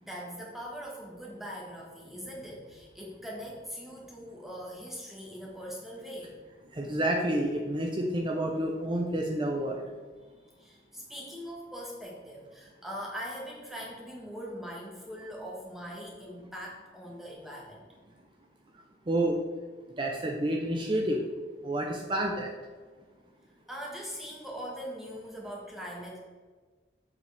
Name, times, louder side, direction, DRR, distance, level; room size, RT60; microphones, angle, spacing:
voice 1, 0.0-6.4 10.6-17.8 23.7-26.2, equal, ahead, -3 dB, 1.5 m, -41 dB
voice 2, 6.7-9.8 19.1-19.4 20.0-21.2 21.6-22.5, right 1 dB, 25° right, 0 dB, 0.7 m, -29 dB
7.4 x 6.8 x 3.5 m, 1.4 s
head